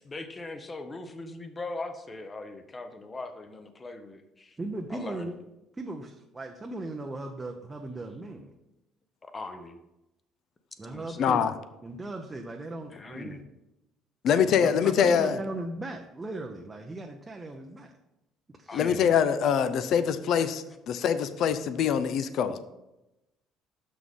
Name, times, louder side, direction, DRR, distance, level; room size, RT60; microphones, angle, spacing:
voice 1, 0.1-4.6 4.9-5.3 9.2-9.8 10.8-11.4 12.9-13.4 18.7-19.1, left 2 dB, 25° left, 8 dB, 0.8 m, -40 dB
voice 2, 4.6-5.3 5.8-8.5 10.8-11.5 11.8-13.4 14.4-17.9 18.6-18.8, right 2 dB, 20° right, 3 dB, 0.6 m, -38 dB
voice 3, 11.2-11.5 14.2-15.4 18.7-22.6, left 7 dB, 60° left, 12 dB, 0.5 m, -24 dB
6.3 x 6.1 x 3.6 m, 0.94 s
cardioid pair, 110°, 0 cm